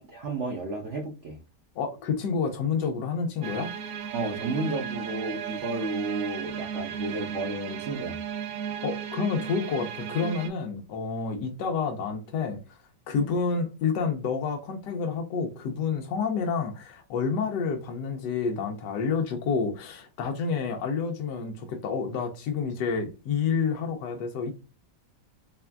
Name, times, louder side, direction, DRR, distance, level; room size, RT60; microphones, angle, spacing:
voice 1, 0.0-1.4 4.1-8.2, right 2 dB, 50° right, 1.0 m, -32 dB
voice 2, 1.7-3.7 8.8-12.8 13.1-24.5, left 5 dB, 80° left, 1.4 m, -29 dB
sound 1, 3.4-10.5, right 8 dB, 75° right, 1.3 m, -35 dB
4.3 x 3.4 x 2.3 m
omnidirectional pair, 1.9 m